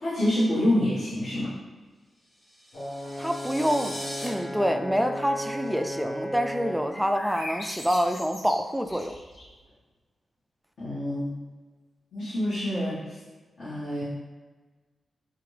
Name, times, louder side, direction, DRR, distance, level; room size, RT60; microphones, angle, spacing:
voice 1, 0.0-1.5 10.8-11.3 12.1-13.1 13.6-14.0, left 1 dB, 70° left, -12 dB, 1.5 m, -26 dB
sound 1, 2.4-4.3, equal, 25° left, 0.9 m, -40 dB
Brass instrument, 2.7-7.0, equal, 90° left, 1.3 m, -35 dB
voice 2, 3.2-9.2, equal, 5° right, 6 dB, 0.3 m, -27 dB
sound 2, 6.9-9.6, left 1 dB, 50° left, 1.3 m, -40 dB
4.8 x 2.5 x 3.2 m, 1.3 s
cardioid pair, 70°, 0 cm